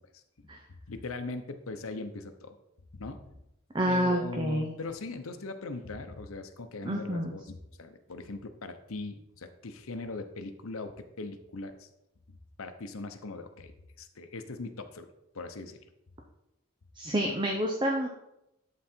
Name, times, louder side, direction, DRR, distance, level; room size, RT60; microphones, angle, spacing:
voice 1, 0.9-2.6 2.9-3.2 3.9-11.9 12.3-13.7 14.0-15.1 15.3-15.8, left 3 dB, 90° left, 8 dB, 0.8 m, -40 dB
voice 2, 3.7-4.8 6.8-7.3 16.9-18.1, equal, 20° right, 1 dB, 0.7 m, -28 dB
11.0 x 3.9 x 4.4 m, 0.86 s
head